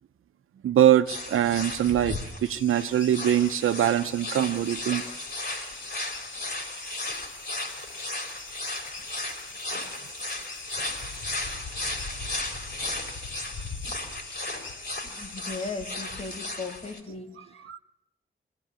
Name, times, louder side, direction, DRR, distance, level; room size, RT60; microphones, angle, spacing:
voice 1, 0.6-5.0 17.7-17.8, right 11 dB, 90° right, 0.7 m, -23 dB
sound 1, 1.1-17.0, left 2 dB, 55° left, 4.9 m, -35 dB
sound 2, 2.5-15.9, left 3 dB, 70° left, 1.9 m, -45 dB
voice 2, 15.0-17.6, left 3 dB, 30° left, 1.6 m, -37 dB
22.0 x 17.0 x 8.8 m
cardioid pair, 60°, 21 cm